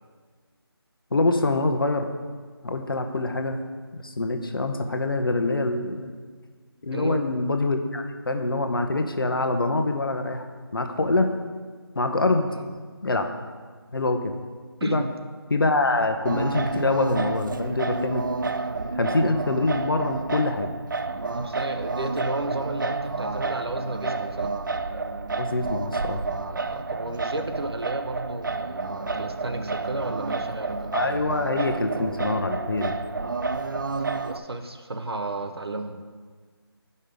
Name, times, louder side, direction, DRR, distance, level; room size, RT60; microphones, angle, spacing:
voice 1, 1.1-2.1 2.6-3.6 3.9-6.1 6.8-10.4 10.7-11.3 11.9-12.5 13.0-13.3 13.9-14.3 14.8-15.0 15.5-18.3 19.0-20.7 25.4-26.2 30.9-32.9, left 2 dB, 60° left, 6 dB, 0.9 m, -25 dB
voice 2, 6.9-7.3 12.5-12.7 14.8-15.1 21.3-24.6 26.7-30.9 34.1-36.0, right 2 dB, 75° right, 6 dB, 0.9 m, -33 dB
Singing, 16.2-34.4, right 3 dB, 50° right, 0.4 m, -30 dB
9.2 x 5.5 x 5.1 m, 1.5 s
figure-of-eight pair, 165°, 13 cm